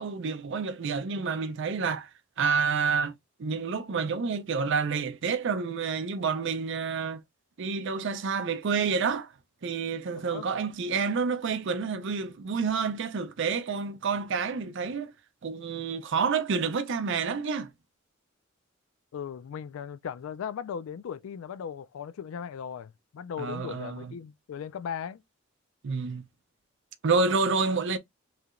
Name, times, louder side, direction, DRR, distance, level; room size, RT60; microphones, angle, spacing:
voice 1, 0.0-2.1 2.4-3.1 3.4-7.2 7.6-9.3 9.6-15.1 15.4-17.7 23.4-24.1 25.8-26.2 27.0-28.0, right 5 dB, 65° right, 0.5 m, -29 dB
voice 2, 10.1-10.5 19.1-25.2, left 7 dB, 80° left, 0.3 m, -37 dB
3.2 x 2.8 x 2.4 m
head